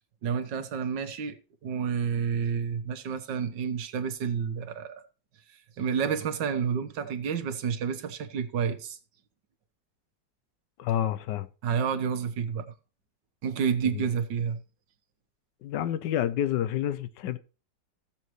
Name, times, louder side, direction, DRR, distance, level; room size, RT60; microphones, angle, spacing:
voice 1, 0.2-1.4 1.6-5.0 5.8-9.0 11.6-12.7 13.4-14.6, right 7 dB, 80° right, 1.7 m, -29 dB
voice 2, 10.8-11.5 13.9-14.1 15.6-17.4, left 11 dB, 80° left, 1.3 m, -29 dB
15.0 x 7.2 x 3.1 m
omnidirectional pair, 1.9 m